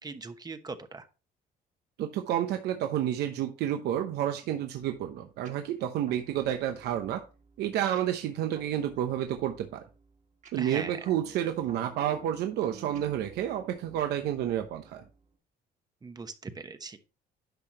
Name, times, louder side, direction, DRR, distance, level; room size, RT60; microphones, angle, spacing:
voice 1, 0.0-1.1 10.6-11.0 16.0-17.0, right 4 dB, 25° right, 9 dB, 1.0 m, -40 dB
voice 2, 2.0-7.2 7.6-9.8 10.5-15.0, right 11 dB, 80° right, 6 dB, 0.9 m, -30 dB
sound 1, 4.7-15.4, right 5 dB, 45° right, 1.8 m, -53 dB
10.5 x 5.8 x 2.9 m, 0.33 s
cardioid pair, 110°, 17 cm